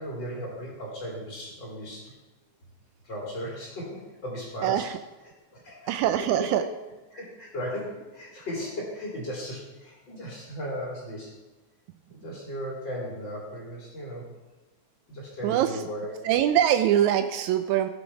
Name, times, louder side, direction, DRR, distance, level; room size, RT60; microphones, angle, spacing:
voice 1, 0.0-2.1 3.0-4.9 5.5-6.7 7.1-11.3 12.1-14.3 15.1-16.2, equal, 40° left, -4 dB, 3.5 m, -36 dB
voice 2, 4.6-4.9 5.9-6.6 15.4-15.7 16.2-17.9, right 11 dB, 85° right, 9 dB, 1.9 m, -23 dB
16.0 x 7.1 x 5.0 m, 1.2 s
omnidirectional pair, 3.3 m